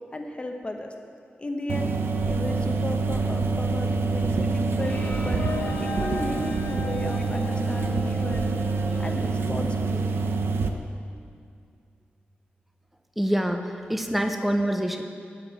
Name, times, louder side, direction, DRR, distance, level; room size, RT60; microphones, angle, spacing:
voice 1, 0.1-0.9 1.4-1.9 2.3-5.4 5.8-8.5 9.0-10.2, left 2 dB, 30° left, 3 dB, 1.0 m, -35 dB
sound 1, 1.7-10.7, right 4 dB, 80° right, 0.7 m, -26 dB
sound 2, 4.6-8.5, left 4 dB, 80° left, 0.9 m, -37 dB
Bowed string instrument, 4.8-9.3, left 2 dB, 50° left, 1.8 m, -41 dB
voice 2, 13.2-15.0, equal, 5° right, 5 dB, 0.8 m, -26 dB
9.4 x 8.6 x 7.0 m, 2.3 s
wide cardioid pair, 110°, 4 cm